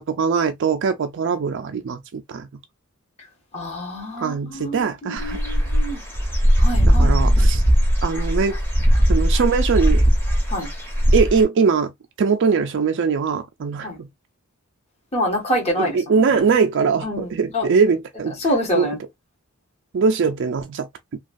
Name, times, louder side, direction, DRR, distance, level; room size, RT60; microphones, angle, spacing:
voice 1, 0.0-2.5 4.2-5.6 6.9-7.6 8.0-8.6 9.1-10.0 11.1-11.9 12.2-14.1 15.8-18.4 18.8-18.9 19.9-20.9, right 5 dB, 60° right, 0.4 m, -21 dB
voice 2, 3.5-6.0 6.6-7.5 10.5-10.7 13.8-14.0 15.1-15.9 17.0-17.3 17.5-17.7 18.4-19.0, equal, 30° left, 1.1 m, -26 dB
Dog / Bird, 5.2-11.4, equal, 10° left, 0.9 m, -18 dB
3.0 x 2.3 x 2.5 m
head